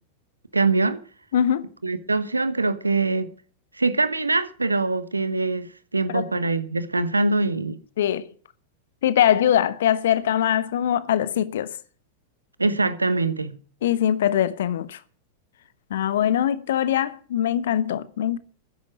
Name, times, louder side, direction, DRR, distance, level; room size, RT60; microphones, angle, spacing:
voice 1, 0.5-1.0 1.8-3.3 3.7-7.8 12.6-13.6, right 3 dB, 80° right, 1.2 m, -23 dB
voice 2, 1.3-1.7 6.1-6.3 8.0-8.3 9.0-11.8 13.8-15.0 15.9-18.4, left 10 dB, 60° left, 1.1 m, -22 dB
14.0 x 10.0 x 6.1 m
figure-of-eight pair, 90°, 0 cm